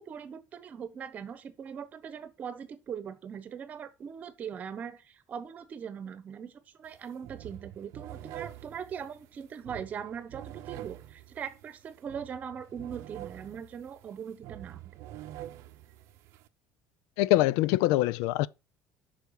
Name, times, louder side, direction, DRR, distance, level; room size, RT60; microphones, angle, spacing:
voice 1, 0.0-14.8, right 7 dB, 30° right, 1.0 m, -41 dB
sound 1, 6.8-7.0 7.2-16.5, right 13 dB, 60° right, 0.7 m, -46 dB
voice 2, 17.2-18.5, left 16 dB, 90° left, 0.4 m, -24 dB
8.2 x 5.8 x 4.7 m
cardioid pair, 180°, 5 cm